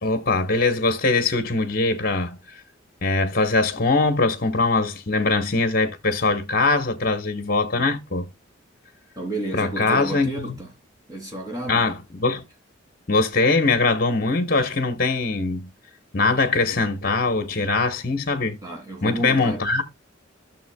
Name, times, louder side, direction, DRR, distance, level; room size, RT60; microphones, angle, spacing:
voice 1, 0.0-2.6 3.0-8.2 9.5-10.3 11.7-12.4 13.1-15.7 16.1-18.6 19.0-19.8, left 3 dB, 45° left, 1.1 m, -22 dB
voice 2, 9.2-10.7 11.1-11.9 18.6-19.7, right 1 dB, 20° right, 2.7 m, -31 dB
12.5 x 6.6 x 2.2 m
head